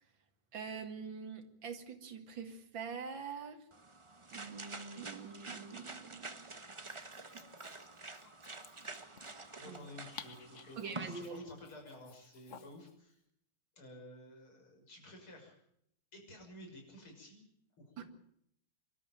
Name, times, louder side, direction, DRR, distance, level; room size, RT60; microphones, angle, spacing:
voice 1, 0.5-3.6 4.3-6.4 9.6-9.8 10.8-11.4 18.0-18.1, right 5 dB, 65° right, 6 dB, 2.7 m, -44 dB
sound 1, 3.7-11.3, right 3 dB, 20° right, 0.8 m, -48 dB
Dog, 6.7-12.9, left 7 dB, 45° left, 1.1 m, -56 dB
voice 2, 9.6-13.2 13.8-15.5 16.1-17.4 17.8-18.1, left 1 dB, 85° left, 1 dB, 7.2 m, -53 dB
25.5 x 13.0 x 9.2 m, 0.72 s
omnidirectional pair, 2.3 m